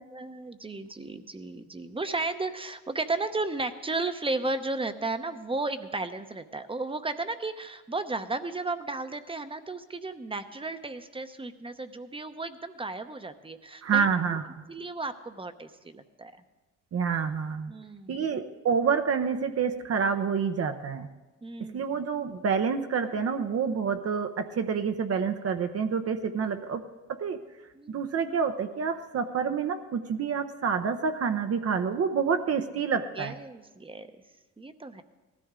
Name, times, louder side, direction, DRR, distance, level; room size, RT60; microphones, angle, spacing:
voice 1, 0.0-14.4 14.7-16.3 17.7-18.3 21.4-21.8 27.7-28.0 33.2-34.1 34.6-35.0, right 3 dB, 20° right, 10 dB, 0.8 m, -34 dB
voice 2, 13.8-14.5 16.9-17.7 18.1-21.1 21.6-26.8 27.1-27.4 27.9-33.3, right 6 dB, 50° right, 7 dB, 0.8 m, -28 dB
18.5 x 13.5 x 3.7 m, 1.2 s
cardioid pair, 90°, 30 cm